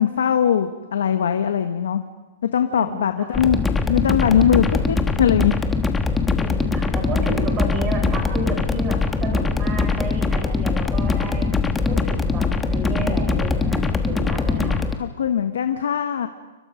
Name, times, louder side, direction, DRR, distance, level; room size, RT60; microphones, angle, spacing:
voice 1, 0.0-2.0 2.5-3.6 3.9-5.5 14.6-16.3, left 9 dB, 85° left, 7 dB, 1.5 m, -20 dB
voice 2, 2.7-3.3 6.4-11.5 11.9-14.8, right 2 dB, 20° right, 1 dB, 6.9 m, -31 dB
sound 1, 3.3-14.9, left 4 dB, 10° left, 1.3 m, -22 dB
29.5 x 22.5 x 5.2 m, 1.2 s
hypercardioid pair, 160°, 0 cm